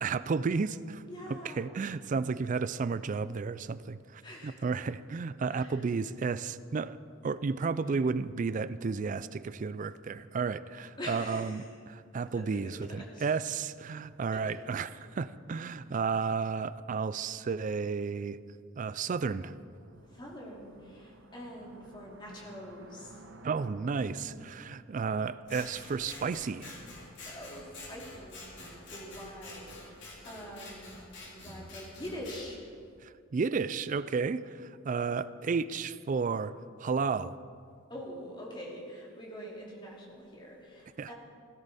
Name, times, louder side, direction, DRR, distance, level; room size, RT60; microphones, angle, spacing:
voice 1, 0.0-1.0 1.3-7.0 7.2-18.4 18.8-19.5 23.4-26.8 33.0-37.4 41.0-41.1, right 5 dB, 40° right, 0.3 m, -32 dB
voice 2, 1.1-1.6 4.2-4.6 5.5-5.8 7.8-7.9 11.0-11.7 12.3-13.3 14.3-14.6 20.1-23.2 27.3-31.0 31.2-32.7 37.9-41.1, equal, 25° left, 2.5 m, -45 dB
sound 1, 19.5-24.4, right 1 dB, 60° right, 1.1 m, -53 dB
Scissors, 25.5-32.4, left 2 dB, 60° left, 3.4 m, -47 dB
16.0 x 14.0 x 4.2 m
head